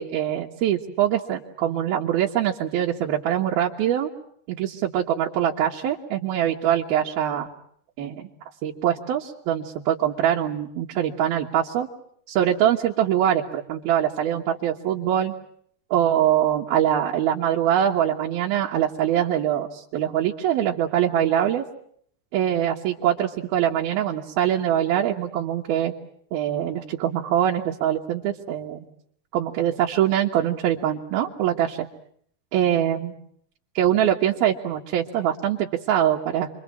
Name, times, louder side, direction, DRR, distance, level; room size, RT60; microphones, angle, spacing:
voice 1, 0.0-4.1 4.5-7.5 8.0-8.3 8.6-11.9 12.3-15.3 15.9-21.7 22.3-25.9 26.3-28.8 29.3-31.9 32.5-33.1 33.7-36.5, right 10 dB, 80° right, -1 dB, 3.4 m, -23 dB
28.5 x 24.5 x 7.4 m, 0.65 s
omnidirectional pair, 4.3 m